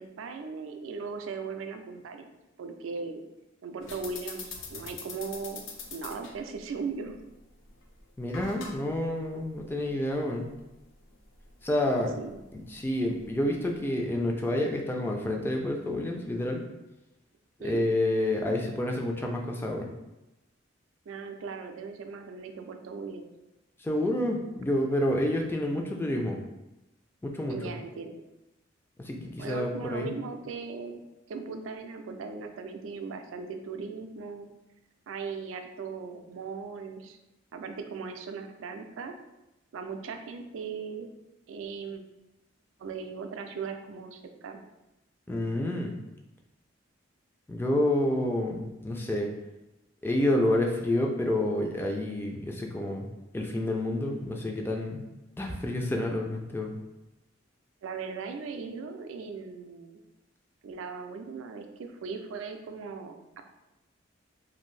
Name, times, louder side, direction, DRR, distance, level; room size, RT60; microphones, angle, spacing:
voice 1, 0.0-2.3 2.6-3.2 3.6-5.6 5.9-7.2 12.2-12.4 17.6-17.8 21.1-23.3 27.5-28.2 29.4-34.5 35.1-37.2 37.5-39.1 39.7-41.1 41.5-42.0 42.8-44.6 57.8-60.0 60.6-63.4, right 5 dB, 85° right, 6 dB, 0.4 m, -38 dB
sound 1, 3.8-13.9, left 4 dB, 70° left, 0.5 m, -46 dB
voice 2, 8.2-10.5 11.6-12.2 12.5-16.6 17.6-19.9 23.8-26.4 27.2-27.7 29.0-30.1 45.3-45.9 47.5-49.3 50.0-53.1 53.3-55.1 55.4-56.7, left 1 dB, 10° left, 1 dB, 0.3 m, -29 dB
2.6 x 2.5 x 3.1 m, 0.97 s
head